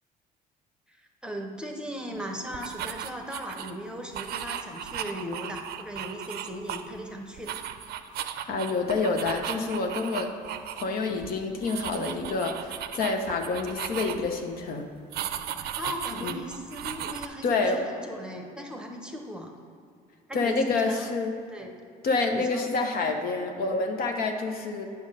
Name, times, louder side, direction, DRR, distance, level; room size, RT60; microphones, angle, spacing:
voice 1, 0.9-7.7 15.6-19.5 20.3-21.0 21.5-21.8 22.3-22.6, equal, 5° right, 2 dB, 0.9 m, -38 dB
sound 1, 2.5-3.7 4.1-7.1 7.4-10.8 11.1-11.3 11.6-14.4 15.1-17.3, right 10 dB, 70° right, 0.5 m, -36 dB
voice 2, 8.5-10.3 10.7-14.9 16.2-16.4 17.4-17.9 20.3-21.3 22.0-24.9, left 3 dB, 60° left, 4 dB, 0.9 m, -28 dB
9.4 x 3.6 x 6.5 m, 2.4 s
cardioid pair, 110°, 17 cm